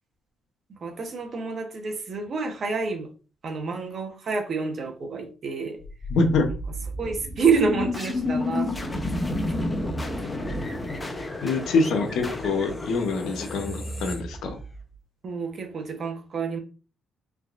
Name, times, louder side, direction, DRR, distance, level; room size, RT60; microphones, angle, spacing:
voice 1, 0.8-3.1 3.4-5.8 7.0-9.9 15.2-16.6, right 4 dB, 50° right, 4 dB, 1.0 m, -28 dB
sound 1, 5.8-14.9, left 2 dB, 15° left, 0.7 m, -31 dB
voice 2, 6.1-6.5 11.4-14.6, left 3 dB, 80° left, 6 dB, 0.8 m, -25 dB
3.9 x 3.5 x 2.4 m, 0.35 s
cardioid pair, 90°, 0 cm